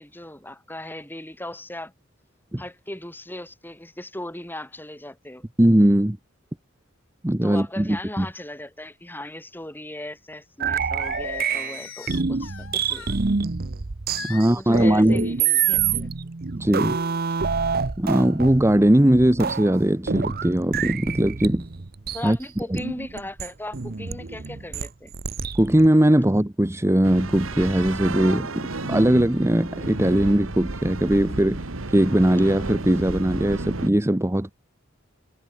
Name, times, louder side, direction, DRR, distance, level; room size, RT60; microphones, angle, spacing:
voice 1, 0.0-1.9 2.6-5.5 7.4-13.1 14.3-16.1 22.1-25.1, left 1 dB, 10° left, 4.6 m, -37 dB
voice 2, 5.6-6.2 7.2-8.3 14.2-15.3 16.6-17.0 18.0-21.6 22.2-22.4 22.7-22.8 25.6-34.5, right 1 dB, 15° right, 0.9 m, -20 dB
sound 1, 10.6-25.9, right 6 dB, 45° right, 0.8 m, -27 dB
Singing, 11.0-13.2 14.1-15.0 15.4-16.0, left 8 dB, 80° left, 1.7 m, -37 dB
sound 2, 27.0-33.9, right 2 dB, 80° right, 1.6 m, -32 dB
head